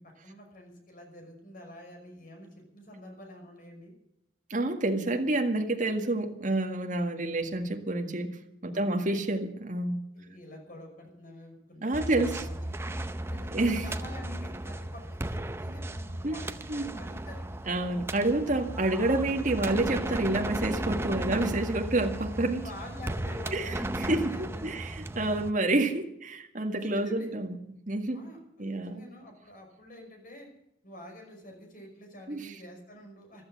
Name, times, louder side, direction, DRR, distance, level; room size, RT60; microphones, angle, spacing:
voice 1, 0.0-3.9 8.7-9.0 10.1-17.6 22.5-24.8 26.7-27.3 28.1-30.5 30.8-33.5, left 1 dB, 45° left, 2 dB, 5.6 m, -48 dB
voice 2, 4.5-8.4 8.6-10.0 11.8-12.4 13.5-13.8 16.2-16.4 16.7-16.9 17.7-22.6 23.5-27.6 27.9-28.2 28.6-29.1 32.3-32.5, right 2 dB, 45° right, 3 dB, 1.8 m, -28 dB
sound 1, 11.9-25.5, right 1 dB, 15° right, 0.6 m, -35 dB
14.5 x 13.0 x 7.3 m, 0.82 s
head